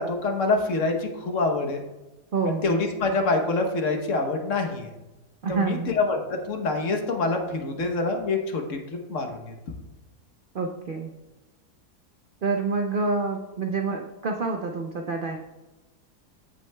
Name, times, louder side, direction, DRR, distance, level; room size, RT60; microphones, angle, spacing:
voice 1, 0.0-1.8 2.5-4.9 5.5-9.5, left 3 dB, 55° left, 4 dB, 1.2 m, -26 dB
voice 2, 2.3-2.7 5.4-6.0 10.5-11.1 12.4-15.4, right 4 dB, 85° right, 3 dB, 0.4 m, -27 dB
14.0 x 6.0 x 2.2 m, 1.1 s
omnidirectional pair, 1.7 m